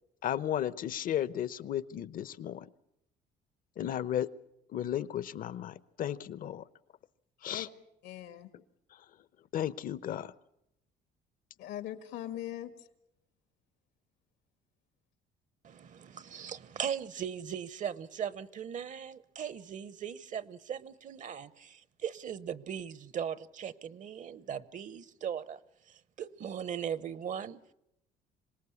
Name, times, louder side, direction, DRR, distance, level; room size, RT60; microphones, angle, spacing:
voice 1, 0.2-2.7 3.8-4.3 4.7-6.6 7.4-7.7 9.5-10.3, left 10 dB, 55° left, 0.9 m, -34 dB
voice 2, 8.0-8.5 11.6-12.7, left 12 dB, 85° left, 2.0 m, -40 dB
voice 3, 15.6-25.6 25.9-27.6, right 8 dB, 50° right, 0.9 m, -39 dB
26.0 x 18.5 x 8.5 m
cardioid pair, 110°, 17 cm